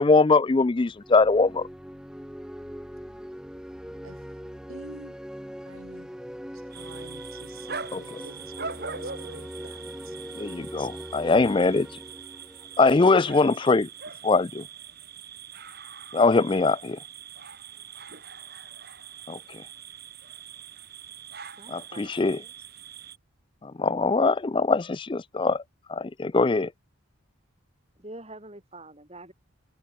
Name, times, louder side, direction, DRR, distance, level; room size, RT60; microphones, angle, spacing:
voice 1, 0.0-1.7 7.9-8.0 10.4-11.9 12.8-13.9 14.2-14.6 16.1-17.0 19.3-19.4 21.7-22.4 23.6-25.6 25.9-26.7, left 3 dB, 25° left, 0.4 m, -22 dB
sound 1, 0.9-13.5, equal, 5° right, 2.8 m, -41 dB
voice 2, 4.7-5.2 5.7-6.1 6.5-10.2, right 2 dB, 80° right, 3.1 m, -48 dB
sound 2, 6.7-23.2, right 6 dB, 45° right, 5.6 m, -42 dB
voice 3, 21.6-22.1 28.0-29.3, right 2 dB, 30° right, 4.4 m, -44 dB
head